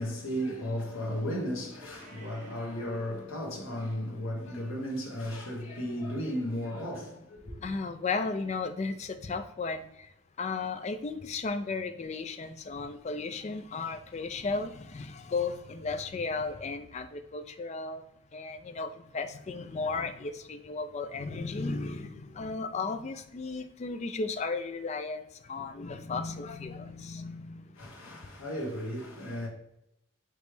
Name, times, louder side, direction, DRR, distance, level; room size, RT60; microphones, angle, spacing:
voice 1, 0.0-7.6 27.7-29.5, equal, 70° left, 1.3 m, -35 dB
Meow, 1.8-2.7, right 3 dB, 35° right, 0.9 m, -54 dB
voice 2, 7.6-9.8 10.4-18.0 18.3-25.2 25.5-27.6, left 4 dB, 30° left, 0.3 m, -35 dB
5.1 x 3.2 x 3.2 m
head